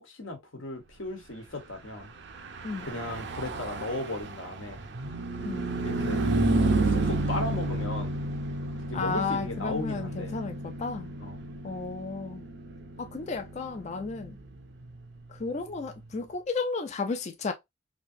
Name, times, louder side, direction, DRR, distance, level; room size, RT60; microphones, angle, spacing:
voice 1, 0.0-2.1 2.8-4.8 5.8-6.2 6.7-8.2 8.9-10.4 11.2-11.4, left 2 dB, 85° left, 1.2 m, -36 dB
Car passing by / Truck, 2.2-15.9, right 2 dB, 60° right, 0.6 m, -31 dB
voice 2, 8.9-11.1 11.6-12.4 13.0-14.4 15.3-17.5, left 4 dB, 35° left, 0.4 m, -33 dB
3.3 x 2.7 x 2.6 m
head